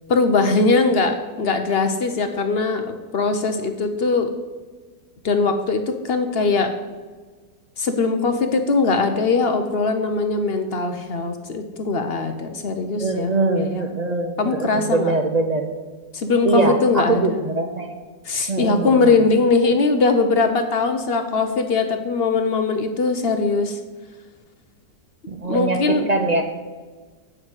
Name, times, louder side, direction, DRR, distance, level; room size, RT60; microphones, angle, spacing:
voice 1, 0.1-4.3 5.2-6.7 7.8-13.9 14.4-15.1 16.1-17.4 18.3-23.8 25.5-26.1, left 4 dB, 60° left, 7 dB, 0.6 m, -21 dB
voice 2, 13.0-15.7 16.4-17.9 18.5-19.3 25.3-26.4, right 3 dB, 85° right, 3 dB, 0.3 m, -22 dB
7.8 x 5.9 x 7.9 m, 1.4 s
omnidirectional pair, 1.9 m